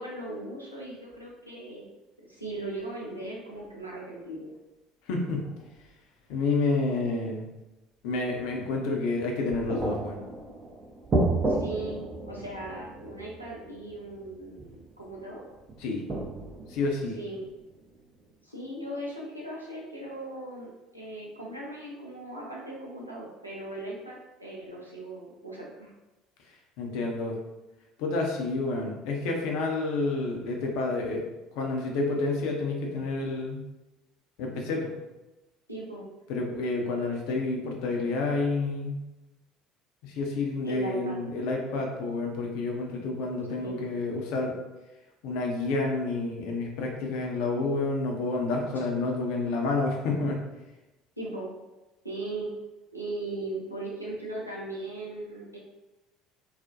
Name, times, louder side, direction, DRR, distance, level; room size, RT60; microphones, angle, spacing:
voice 1, 0.0-4.5 11.5-15.4 17.2-17.4 18.4-25.9 35.7-36.1 40.6-41.2 43.6-43.9 51.2-51.5 52.0-52.5 52.9-55.6, right 2 dB, 90° right, -5 dB, 0.5 m, -38 dB
sound 1, 1.1-1.2 2.5-2.7 5.3-5.8 7.0-7.1 8.2-8.7 9.2-18.4, right 2 dB, 30° right, 0.5 m, -33 dB
voice 2, 5.1-5.5 6.3-7.5 8.0-10.2 15.8-16.0 16.7-17.2 26.8-27.4 28.0-31.2 31.5-33.6 34.4-34.9 36.3-39.0 40.0-44.5 45.2-50.4, left 3 dB, 60° left, 0 dB, 0.5 m, -29 dB
2.3 x 2.0 x 2.7 m, 1.0 s
figure-of-eight pair, 60°, 0 cm